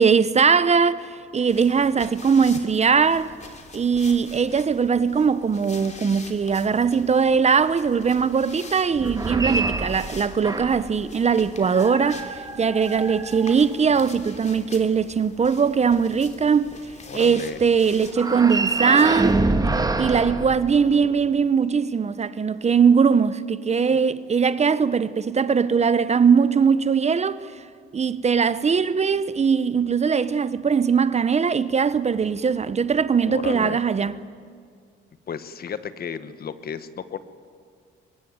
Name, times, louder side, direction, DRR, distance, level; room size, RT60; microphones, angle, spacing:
voice 1, 0.0-3.3 3.7-16.7 17.1-19.3 20.0-27.4 27.9-34.1, right 6 dB, 35° right, 0.8 m, -20 dB
sound 1, 1.5-19.3, left 4 dB, 35° left, 2.9 m, -45 dB
Dungeon gates, 8.9-11.0 11.6-14.0 18.1-21.3, right 2 dB, 20° right, 1.5 m, -26 dB
voice 2, 17.1-17.6 33.3-33.8 35.3-37.2, left 7 dB, 50° left, 1.3 m, -33 dB
23.0 x 22.0 x 9.5 m
cardioid pair, 90°, 20 cm